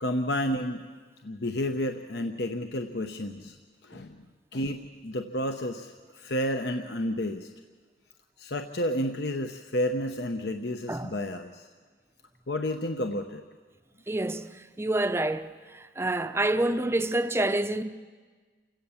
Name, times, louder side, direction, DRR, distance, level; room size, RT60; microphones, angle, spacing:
voice 1, 0.0-0.8 1.2-3.6 3.8-4.2 4.5-7.5 8.4-11.7 12.5-13.4, left 1 dB, 60° left, 0.9 m, -31 dB
voice 2, 14.1-14.4 14.8-15.5 16.0-17.8, right 1 dB, 15° right, 0.7 m, -27 dB
29.0 x 17.0 x 7.2 m
head